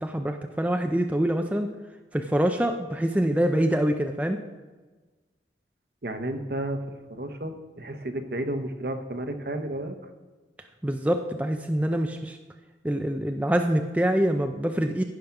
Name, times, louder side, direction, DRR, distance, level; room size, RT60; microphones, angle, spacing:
voice 1, 0.0-1.7 2.1-4.4 10.8-12.4 12.8-15.0, right 1 dB, 10° right, 5 dB, 0.4 m, -25 dB
voice 2, 6.0-10.0, right 1 dB, 60° right, 7 dB, 1.0 m, -32 dB
15.0 x 5.1 x 5.9 m, 1.3 s
head